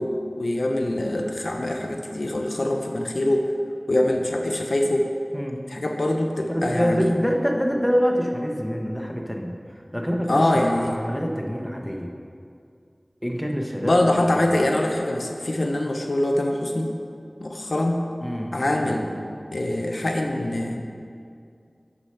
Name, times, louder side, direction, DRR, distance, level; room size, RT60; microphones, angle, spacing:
voice 1, 0.0-3.5 3.9-5.1 5.7-7.1 10.3-11.0 13.8-16.9 17.4-18.1 18.5-20.8, left 1 dB, 70° left, 3 dB, 0.8 m, -24 dB
voice 2, 6.5-12.1 13.2-13.9 14.3-14.5 18.2-18.9, equal, 5° left, 1 dB, 1.1 m, -26 dB
8.6 x 6.7 x 5.8 m, 2.3 s
wide cardioid pair, 45°, 0 cm